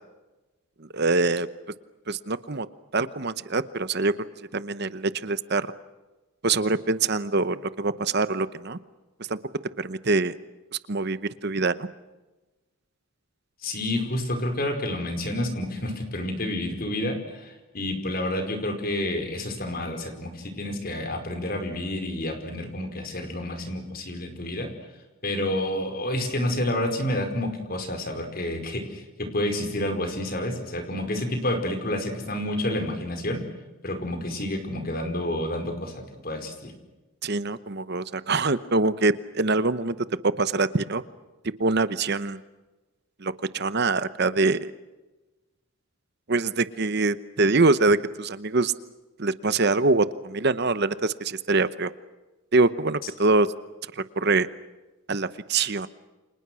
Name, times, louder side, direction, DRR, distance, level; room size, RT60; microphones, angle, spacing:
voice 1, 0.9-1.5 2.1-2.7 2.9-4.1 4.5-5.7 6.4-8.8 9.3-9.4 9.8-10.3 10.9-11.9 37.2-40.0 40.4-41.0 41.6-42.4 43.2-44.7 46.3-48.7 49.2-51.9 52.5-53.5 54.0-54.5 55.1-55.9, right 3 dB, 50° right, 14 dB, 0.9 m, -24 dB
voice 2, 13.6-24.7 25.2-33.4 33.8-36.7, left 1 dB, 45° left, 6 dB, 5.1 m, -29 dB
30.0 x 26.5 x 6.3 m, 1.1 s
head